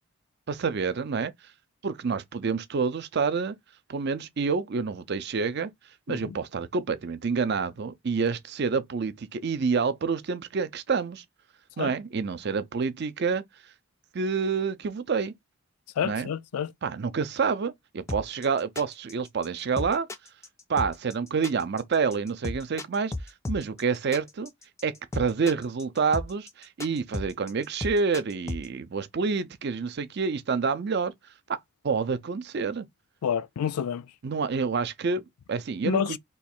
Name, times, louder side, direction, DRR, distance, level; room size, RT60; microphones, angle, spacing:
voice 1, 0.5-1.3 1.8-3.6 3.9-5.7 6.1-11.2 11.8-13.4 14.1-15.3 16.0-16.3 16.8-20.1 20.7-23.1 23.5-24.5 24.8-31.1 31.8-32.9 34.2-36.2, right 5 dB, 50° right, 0.4 m, -28 dB
voice 2, 16.0-16.7 33.2-34.1 35.9-36.2, left 8 dB, 90° left, 0.4 m, -29 dB
sound 1, 18.1-28.7, left 2 dB, 15° left, 0.4 m, -34 dB
3.0 x 2.3 x 4.3 m
head